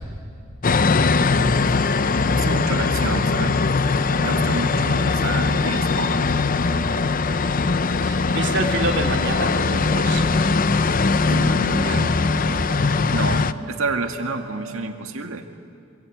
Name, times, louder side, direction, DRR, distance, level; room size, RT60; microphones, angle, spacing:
sound 1, 0.6-13.5, left 4 dB, 45° left, 0.6 m, -20 dB
sound 2, 2.1-14.9, right 2 dB, 40° right, 3.2 m, -42 dB
voice 1, 2.3-3.7 4.2-6.2 11.3-12.2 13.1-15.4, right 3 dB, 85° right, 5 dB, 2.1 m, -29 dB
voice 2, 8.0-10.2, right 2 dB, 60° right, 3 dB, 3.0 m, -27 dB
26.0 x 24.0 x 9.2 m, 2.3 s
head